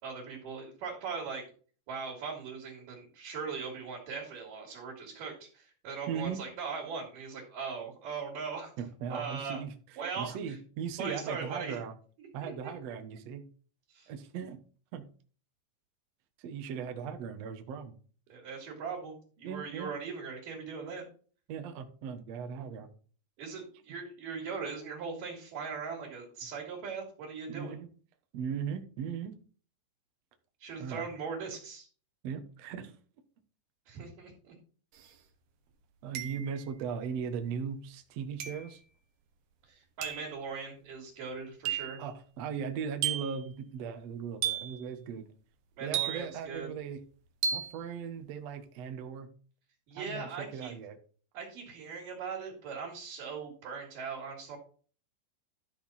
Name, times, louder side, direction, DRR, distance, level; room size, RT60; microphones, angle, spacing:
voice 1, 0.0-1.4 1.9-8.7 9.1-9.6 10.0-10.4 11.0-11.8 12.2-12.7 13.9-14.1 18.3-21.1 23.4-27.7 30.6-31.9 33.9-34.5 39.7-42.0 45.8-46.7 49.9-50.8 51.3-54.6, right 5 dB, 55° right, -3 dB, 3.9 m, -40 dB
voice 2, 6.1-6.4 8.8-11.9 12.3-13.4 14.1-14.6 14.9-15.1 16.4-17.9 19.4-19.9 21.5-22.9 27.5-27.9 28.3-29.3 30.8-31.1 32.2-32.9 36.0-38.8 42.0-45.3 45.8-47.0 47.5-49.3 49.9-51.0, right 7 dB, 85° right, 6 dB, 1.4 m, -38 dB
sound 1, 35.0-35.1 36.1-36.7 38.4-38.7 40.0-40.3 41.6-42.0 43.0-43.4 44.4-44.8 45.9-46.5 47.4-47.8, right 9 dB, 70° right, 2.0 m, -33 dB
12.5 x 6.1 x 4.2 m, 0.40 s
omnidirectional pair, 5.0 m